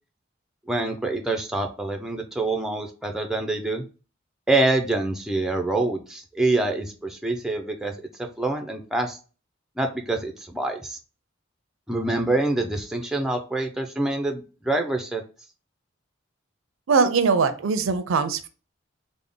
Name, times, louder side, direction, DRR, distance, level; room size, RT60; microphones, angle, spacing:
voice 1, 0.7-3.8 4.5-7.9 8.4-9.2 9.8-11.0 11.9-15.2, right 2 dB, 5° right, 4 dB, 0.4 m, -26 dB
voice 2, 16.9-18.5, right 5 dB, 80° right, 10 dB, 0.4 m, -21 dB
3.5 x 2.0 x 3.7 m, 0.34 s
head